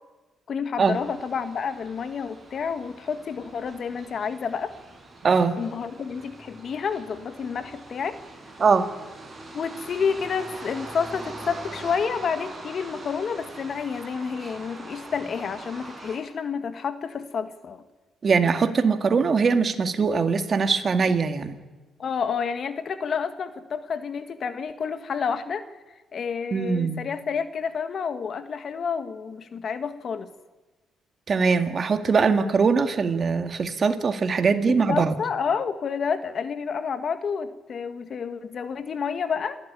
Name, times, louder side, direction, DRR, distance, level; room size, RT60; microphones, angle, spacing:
voice 1, 0.5-4.7 5.6-8.2 9.5-17.8 22.0-25.6 26.1-30.3 34.7-39.6, left 6 dB, 50° left, 10 dB, 1.7 m, -29 dB
sound 1, 0.8-16.2, right 2 dB, 25° right, 7.3 m, -43 dB
voice 2, 5.2-5.6 8.6-8.9 18.2-21.5 26.5-27.1 31.3-35.1, right 5 dB, 45° right, 8 dB, 1.9 m, -22 dB
27.5 x 12.0 x 9.9 m, 1.2 s
cardioid pair, 90°, 0 cm